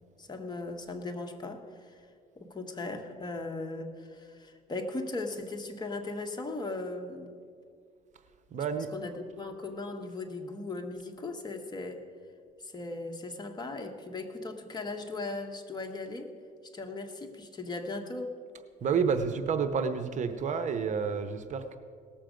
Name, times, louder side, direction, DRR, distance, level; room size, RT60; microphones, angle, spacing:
voice 1, 0.2-2.0 2.4-7.3 8.9-12.0 12.6-16.3 16.7-18.3, left 2 dB, 25° left, 4 dB, 1.2 m, -38 dB
voice 2, 8.5-8.9 18.8-21.8, right 6 dB, 45° right, 9 dB, 0.8 m, -29 dB
18.0 x 7.2 x 5.1 m, 2.2 s
cardioid pair, 110°, 17 cm